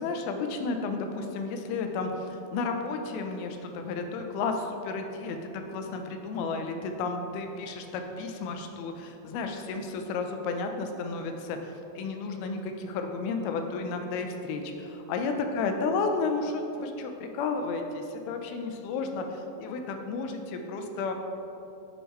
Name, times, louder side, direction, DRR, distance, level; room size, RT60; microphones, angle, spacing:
voice 1, 0.0-21.1, left 4 dB, 85° left, 5 dB, 2.6 m, -32 dB
10.0 x 3.6 x 4.1 m, 2.9 s
omnidirectional pair, 4.3 m